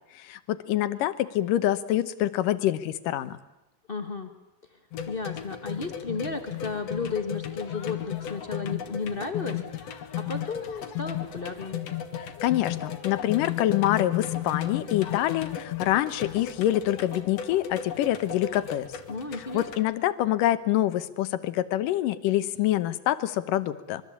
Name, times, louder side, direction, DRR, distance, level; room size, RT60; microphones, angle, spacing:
voice 1, 0.2-3.4 12.2-18.9 19.4-24.0, left 13 dB, 80° left, 14 dB, 2.7 m, -26 dB
voice 2, 3.9-4.3 5.1-9.6 10.2-11.8 19.1-19.8, left 4 dB, 40° left, 7 dB, 0.8 m, -33 dB
sound 1, 4.9-19.8, left 10 dB, 55° left, 2.5 m, -35 dB
25.0 x 23.0 x 8.6 m, 0.97 s
omnidirectional pair, 3.8 m